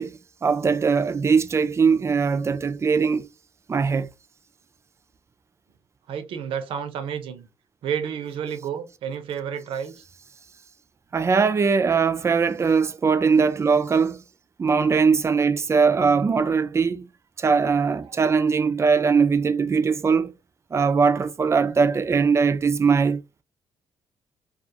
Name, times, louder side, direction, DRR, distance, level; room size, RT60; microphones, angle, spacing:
voice 1, 0.0-3.3 3.7-4.1 11.1-14.2 14.6-17.1 17.4-20.3 20.7-23.2, right 5 dB, 30° right, 0.4 m, -21 dB
voice 2, 6.1-7.5 7.8-9.9, right 8 dB, 75° right, 0.7 m, -30 dB
2.4 x 2.4 x 2.8 m
cardioid pair, 75°, 9 cm